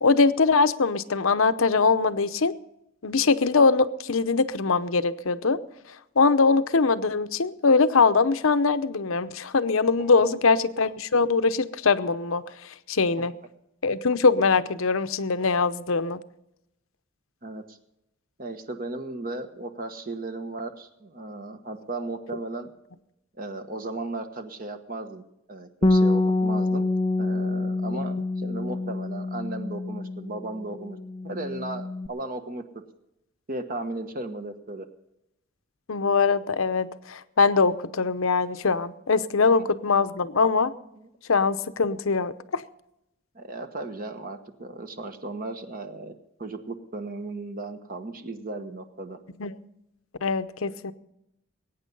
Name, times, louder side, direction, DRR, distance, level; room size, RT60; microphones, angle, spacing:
voice 1, 0.0-2.5 3.0-5.6 6.2-13.3 13.8-16.2 35.9-40.7 41.3-42.6 49.4-49.6 50.2-50.9, left 4 dB, 75° left, 13 dB, 0.8 m, -22 dB
voice 2, 10.0-10.4 17.4-17.8 18.4-22.7 23.4-25.2 25.5-31.0 31.2-32.6 33.5-34.8 41.0-41.1 43.3-46.1 46.4-49.2, right 2 dB, 40° right, 7 dB, 1.2 m, -36 dB
Bass guitar, 25.8-30.5 30.8-32.1, left 2 dB, 25° left, 0.5 m, -26 dB
21.0 x 9.5 x 5.4 m, 0.86 s
head